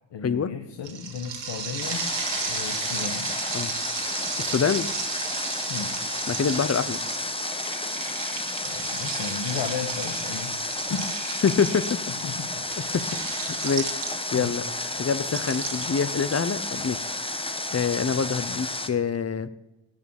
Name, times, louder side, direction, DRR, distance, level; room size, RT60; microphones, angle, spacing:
voice 1, 0.1-2.0 2.4-3.3 5.7-6.0 8.6-10.6 10.9-11.1 12.1-12.6 14.3-14.5, left 6 dB, 65° left, 6 dB, 1.5 m, -34 dB
sound 1, 0.8-14.5 15.2-17.1, right 6 dB, 65° right, 3.1 m, -34 dB
Water, 1.8-18.9, left 2 dB, 10° left, 1.2 m, -32 dB
voice 2, 4.4-4.9 6.3-7.0 11.4-11.8 12.9-14.0 14.3-14.6 15.0-17.1 17.7-19.5, left 6 dB, 35° left, 15 dB, 0.9 m, -25 dB
18.5 x 6.9 x 8.9 m, 1.0 s
wide cardioid pair, 150°, 46 cm